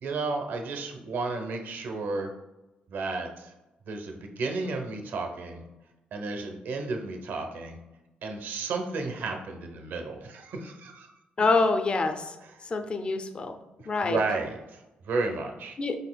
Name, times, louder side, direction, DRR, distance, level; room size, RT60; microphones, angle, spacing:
voice 1, 0.0-2.3 2.9-3.5 3.9-5.6 6.1-7.8 8.2-11.1 12.4-12.5 13.8-15.8, right 3 dB, 70° right, 3 dB, 0.7 m, -33 dB
voice 2, 11.4-12.4 12.7-13.6 13.9-14.2 15.8-16.0, left 3 dB, 30° left, 7 dB, 0.4 m, -26 dB
5.0 x 4.1 x 2.2 m, 1.0 s
cardioid pair, 120°, 3 cm